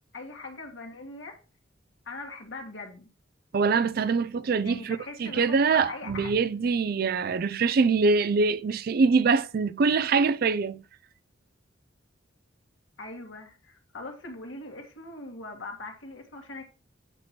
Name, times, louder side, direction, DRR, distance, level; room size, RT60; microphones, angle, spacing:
voice 1, 0.1-1.4 2.1-3.1 4.6-6.3 13.0-16.6, left 2 dB, 75° left, 2.0 m, -41 dB
voice 2, 3.5-10.8, right 4 dB, 50° right, 0.4 m, -24 dB
8.9 x 3.0 x 6.0 m
head